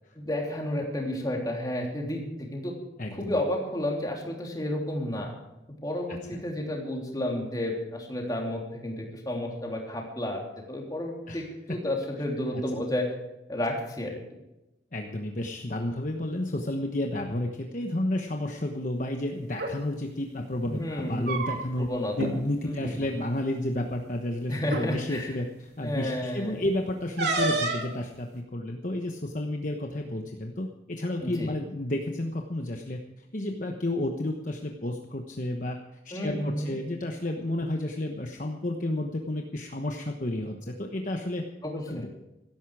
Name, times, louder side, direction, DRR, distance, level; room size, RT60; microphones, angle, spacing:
voice 1, 0.1-2.7 3.1-5.4 5.7-10.4 10.7-13.1 13.5-14.2 20.7-21.5 21.8-22.3 22.6-23.1 24.5-25.4 25.8-26.7 31.2-31.5 36.1-36.8 41.6-42.1, left 1 dB, 20° left, -1 dB, 3.4 m, -31 dB
voice 2, 3.0-3.3 6.1-6.4 11.3-11.4 11.7-11.8 12.5-12.6 14.9-21.9 22.2-35.8 36.0-41.4 41.9-42.1, left 1 dB, 45° left, 2 dB, 1.1 m, -31 dB
sound 1, 19.5-19.7 21.0-21.9 22.2-22.3 22.7-22.9 23.9-24.0 24.6-24.9 27.2-27.9, right 2 dB, 65° right, 3.0 m, -29 dB
16.5 x 14.0 x 4.9 m, 0.96 s
head